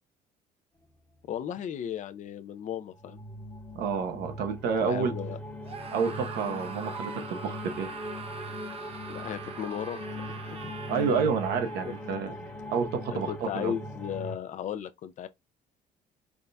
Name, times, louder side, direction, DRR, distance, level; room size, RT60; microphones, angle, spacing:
voice 1, 1.3-3.2 4.8-5.4 9.1-10.7 11.8-11.9 12.2-12.5 13.3-15.3, left 9 dB, 50° left, 0.5 m, -36 dB
sound 1, 2.9-14.4, left 1 dB, 10° left, 1.0 m, -40 dB
voice 2, 3.7-5.1 5.9-7.9 10.9-12.3 12.7-13.7, right 6 dB, 80° right, 0.9 m, -29 dB
Screaming, 5.6-12.1, right 5 dB, 35° right, 0.7 m, -43 dB
3.9 x 3.5 x 2.2 m
cardioid pair, 95°, 17 cm